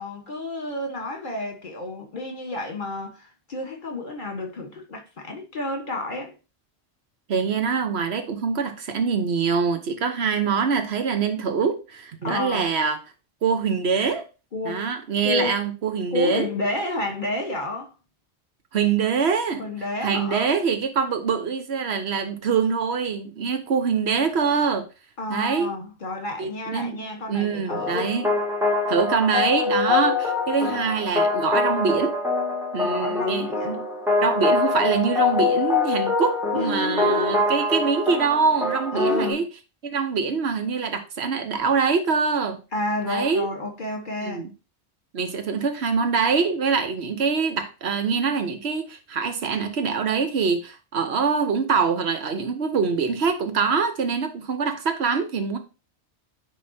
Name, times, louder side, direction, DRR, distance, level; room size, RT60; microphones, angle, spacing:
voice 1, 0.0-6.3 12.2-12.7 14.5-14.8 15.2-15.6 16.1-17.9 19.6-20.5 25.2-28.1 32.8-33.8 36.5-37.5 38.9-39.4 42.7-44.5, left 2 dB, 50° left, 1.6 m, -30 dB
voice 2, 7.3-13.0 13.4-14.2 14.6-16.5 18.7-19.7 20.0-24.8 25.3-25.7 26.4-27.0 27.3-28.3 28.9-32.2 32.7-33.5 34.2-39.4 39.8-42.6 43.1-43.5 44.2-44.5 45.1-55.6, right 5 dB, 70° right, 1.2 m, -24 dB
sound 1, 27.7-39.3, left 3 dB, 5° right, 2.0 m, -24 dB
9.6 x 3.8 x 2.8 m
omnidirectional pair, 1.1 m